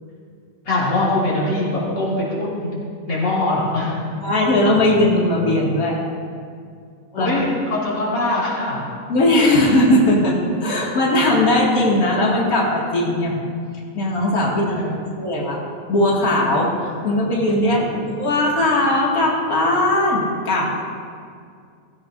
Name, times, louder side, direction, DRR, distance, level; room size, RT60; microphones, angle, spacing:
voice 1, 0.6-2.7 3.1-3.9 7.1-8.8 17.8-18.1, left 2 dB, 80° left, -8 dB, 3.2 m, -22 dB
voice 2, 4.2-6.0 7.2-7.3 9.1-13.4 13.9-15.6 15.9-17.8 18.2-20.8, left 1 dB, 55° left, -4 dB, 2.4 m, -18 dB
16.5 x 16.0 x 2.6 m, 2.2 s
omnidirectional pair, 1.9 m